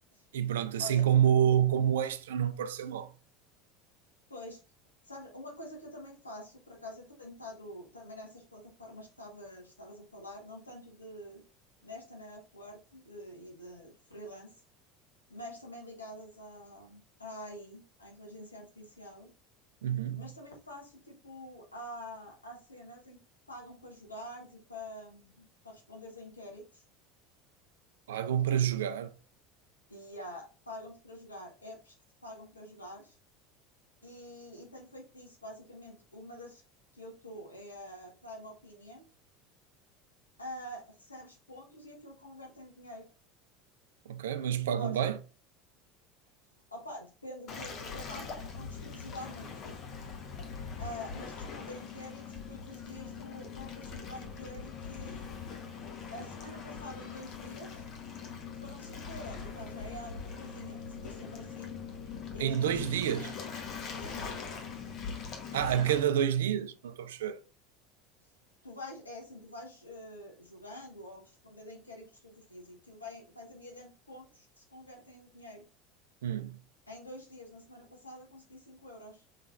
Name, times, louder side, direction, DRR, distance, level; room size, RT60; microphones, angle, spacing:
voice 1, 0.3-3.1 19.8-20.3 28.1-29.1 44.1-45.2 62.4-63.3 65.5-67.4 76.2-76.6, right 9 dB, 70° right, 0.4 m, -28 dB
voice 2, 4.3-4.6 5.0-11.4 11.8-14.5 15.3-19.3 20.1-23.2 23.5-26.8 29.9-32.0 32.2-33.1 34.0-36.6 36.9-39.1 40.4-43.1 44.6-45.0 46.7-49.8 50.8-55.3 56.1-57.8 58.6-61.8 62.3-63.4 63.9-64.3 65.8-66.0 68.6-75.6 76.9-79.2, left 1 dB, 85° left, 1.2 m, -47 dB
Waves surf, 47.5-66.0, left 6 dB, 45° left, 1.2 m, -42 dB
5.5 x 3.7 x 2.5 m
figure-of-eight pair, 70°, 0 cm